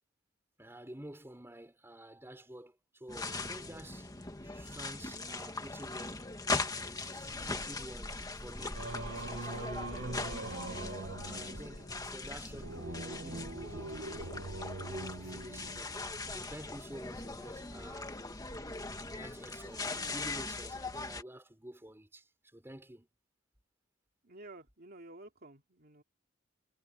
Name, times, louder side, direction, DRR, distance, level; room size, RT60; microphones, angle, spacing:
voice 1, 0.6-4.1 4.4-6.3 6.5-10.4 10.7-14.3 14.8-15.9 16.3-18.2 18.5-18.8 19.1-23.1, right 1 dB, 15° right, 3.6 m, -50 dB
sound 1, 3.1-21.2, left 3 dB, 20° left, 1.8 m, -40 dB
Singing, 8.7-16.1, right 2 dB, 85° right, 1.8 m, -43 dB
voice 2, 24.2-26.0, right 2 dB, 55° right, 2.9 m, -52 dB
head